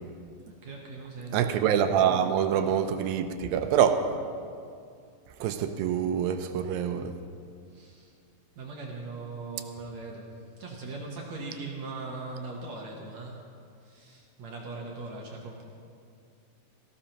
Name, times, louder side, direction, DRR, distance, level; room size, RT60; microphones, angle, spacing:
voice 1, 0.6-1.5 7.7-8.1 8.6-13.4 13.8-15.6, right 3 dB, 65° right, -1 dB, 2.0 m, -40 dB
voice 2, 1.3-4.1 5.4-7.1, right 8 dB, 85° right, 8 dB, 2.4 m, -25 dB
18.0 x 15.0 x 2.9 m, 2.3 s
omnidirectional pair, 4.1 m